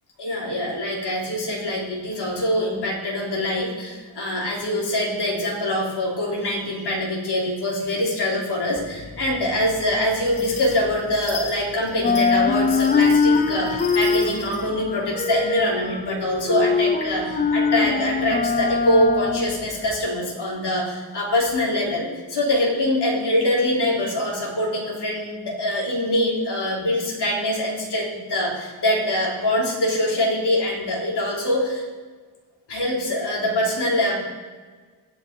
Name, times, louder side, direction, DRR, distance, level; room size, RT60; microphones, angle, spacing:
voice 1, 0.2-31.8 32.7-34.2, left 1 dB, 55° left, -4 dB, 3.4 m, -24 dB
sound 1, 8.8-11.6 11.9-20.1, left 5 dB, 20° left, 0.4 m, -23 dB
sound 2, 10.2-14.6, left 4 dB, 75° left, 2.7 m, -37 dB
16.5 x 5.7 x 3.7 m, 1.4 s
cardioid pair, 110°, 47 cm